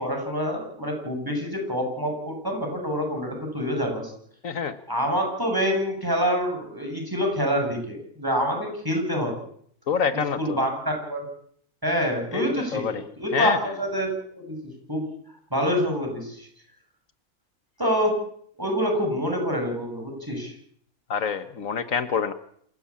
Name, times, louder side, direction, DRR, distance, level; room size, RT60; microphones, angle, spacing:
voice 1, 0.0-4.1 4.9-9.3 10.4-11.3 11.8-14.1 14.4-14.6 14.9-15.0 15.5-16.5 17.8-18.1 18.6-20.5, equal, 15° right, 2 dB, 7.8 m, -26 dB
voice 2, 4.4-4.8 9.9-10.6 12.3-12.4 12.7-13.0 13.3-13.6 21.1-22.3, left 6 dB, 75° left, 11 dB, 1.6 m, -26 dB
27.0 x 15.0 x 8.7 m, 0.65 s
omnidirectional pair, 1.4 m